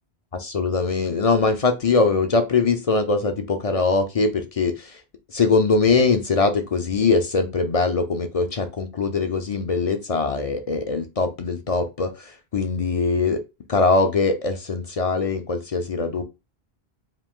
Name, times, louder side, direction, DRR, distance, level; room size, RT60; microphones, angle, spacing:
voice 1, 0.3-4.9 5.3-12.1 12.5-13.4 13.7-16.2, left 4 dB, 45° left, 7 dB, 0.5 m, -22 dB
4.9 x 2.5 x 3.6 m, 0.27 s
omnidirectional pair, 1.1 m